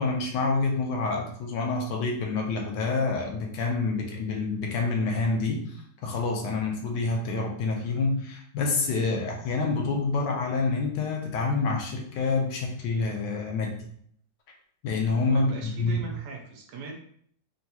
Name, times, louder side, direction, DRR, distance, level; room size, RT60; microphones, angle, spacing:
voice 1, 0.0-13.7 14.8-16.0, left 3 dB, 75° left, 1 dB, 1.2 m, -27 dB
voice 2, 15.3-16.9, right 3 dB, 70° right, 0 dB, 1.1 m, -40 dB
3.6 x 2.3 x 2.8 m, 0.64 s
omnidirectional pair, 2.0 m